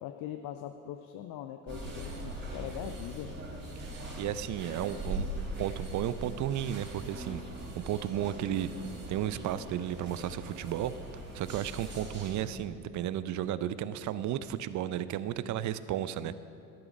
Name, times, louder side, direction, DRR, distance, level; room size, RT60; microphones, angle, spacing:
voice 1, 0.0-3.4, left 11 dB, 45° left, 7 dB, 0.7 m, -41 dB
sound 1, 1.7-12.4, right 1 dB, 20° right, 3.5 m, -41 dB
voice 2, 3.8-5.3 5.6-7.4 7.8-8.7 9.1-10.9 11.3-16.3, right 11 dB, 40° right, 15 dB, 0.6 m, -33 dB
13.5 x 11.0 x 5.1 m, 2.5 s
hypercardioid pair, 70°, 49 cm